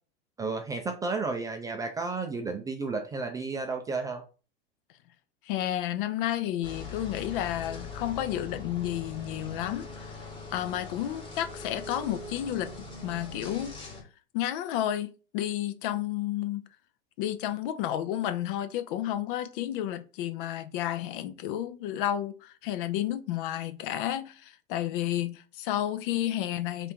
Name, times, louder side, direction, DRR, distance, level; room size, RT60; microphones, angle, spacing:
voice 1, 0.4-4.2, right 4 dB, 10° right, 0.3 m, -32 dB
voice 2, 5.5-10.1 10.5-12.7 13.0-13.7 14.3-16.6 17.2-26.9, left 12 dB, 55° left, 0.6 m, -31 dB
sound 1, 6.6-14.0, left 3 dB, 15° left, 1.8 m, -42 dB
3.3 x 2.6 x 4.5 m
hypercardioid pair, 125°, 31 cm